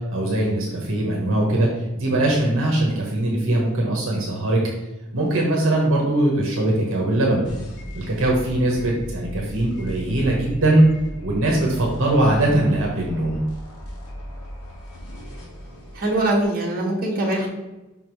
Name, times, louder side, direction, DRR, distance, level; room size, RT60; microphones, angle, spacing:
voice 1, 0.1-1.7 1.9-4.6 5.1-7.4 7.9-10.8 11.2-13.4, right 1 dB, 60° right, -2 dB, 1.2 m, -21 dB
sound 1, 7.4-16.4, equal, 80° left, 1.9 m, -37 dB
voice 2, 12.2-12.6 15.9-17.5, right 1 dB, 40° right, -3 dB, 1.3 m, -23 dB
5.4 x 3.7 x 4.7 m, 1.1 s
head